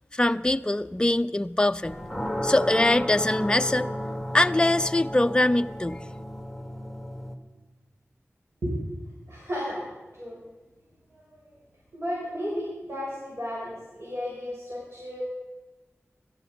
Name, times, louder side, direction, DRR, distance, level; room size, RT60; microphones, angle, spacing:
voice 1, 0.1-1.9 2.4-3.9 4.3-6.0, left 1 dB, 20° left, 10 dB, 0.4 m, -23 dB
sound 1, 1.8-7.4, equal, ahead, 1.4 m, -33 dB
voice 2, 9.3-9.9 10.1-10.4 11.1-11.5 11.9-15.2, equal, 65° right, -6 dB, 5.8 m, -33 dB
17.0 x 13.0 x 5.2 m, 1.2 s
wide cardioid pair, 55°, 5 cm